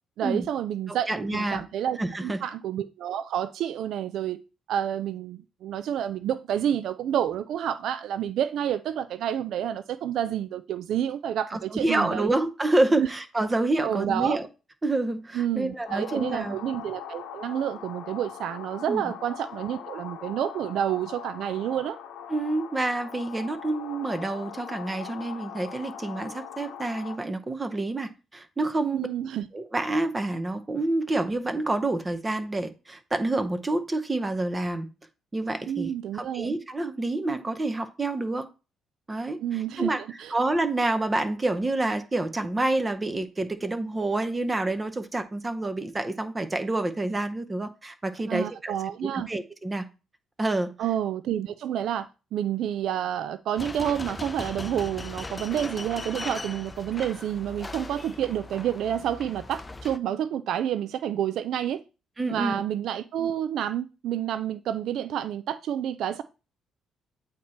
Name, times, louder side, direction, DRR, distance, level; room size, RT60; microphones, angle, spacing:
voice 1, 0.2-4.4 4.7-12.3 13.0-13.1 13.8-14.4 15.3-22.0 28.9-29.5 35.7-36.5 39.4-40.3 48.3-49.3 50.8-61.8 62.3-66.2, right 10 dB, 75° right, 0.3 m, -29 dB
voice 2, 0.9-1.6 2.0-2.4 11.5-14.5 14.8-16.6 18.9-19.1 22.3-29.1 29.5-34.9 35.3-38.5 39.1-40.0 40.3-48.7 49.1-49.9 50.4-50.7 62.2-62.6, right 2 dB, 20° right, 0.8 m, -28 dB
sound 1, 15.8-27.2, left 9 dB, 85° left, 0.9 m, -41 dB
sound 2, 53.6-60.0, left 2 dB, 20° left, 0.5 m, -38 dB
8.3 x 2.9 x 4.3 m
cardioid pair, 90°, 0 cm